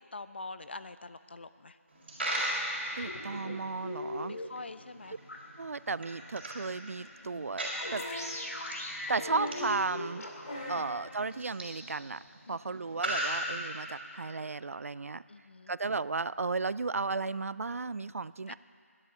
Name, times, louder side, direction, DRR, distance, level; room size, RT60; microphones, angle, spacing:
voice 1, 0.1-1.8 4.3-5.2 7.3-7.5 10.7-10.9 12.5-12.8 15.3-15.7 18.5-18.6, left 3 dB, 45° left, 13 dB, 0.5 m, -45 dB
Coin (dropping), 1.9-14.2, right 1 dB, 40° right, 4.5 m, -39 dB
sound 1, 3.0-4.5 5.3-5.4 7.6-10.6, left 1 dB, 80° left, 2.4 m, -40 dB
voice 2, 3.0-4.4 5.1-5.2 5.6-8.0 9.1-10.3 10.7-12.2 12.5-15.2 15.7-18.5, right 4 dB, 70° right, 18 dB, 0.3 m, -34 dB
sound 2, 7.8-8.3 9.1-9.7 10.4-11.0 12.2-12.3, left 1 dB, 30° left, 2.5 m, -39 dB
12.5 x 11.5 x 6.8 m, 2.3 s
figure-of-eight pair, 175°, 8 cm